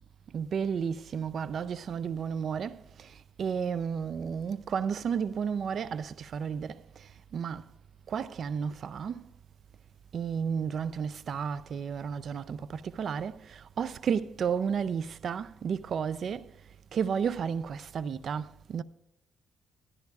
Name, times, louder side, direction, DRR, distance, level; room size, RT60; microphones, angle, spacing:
voice 1, 0.3-7.7 8.1-9.3 10.1-16.5 16.9-18.8, right 7 dB, 55° right, 0.4 m, -32 dB
17.0 x 13.0 x 2.4 m
cardioid pair, 90°, 0 cm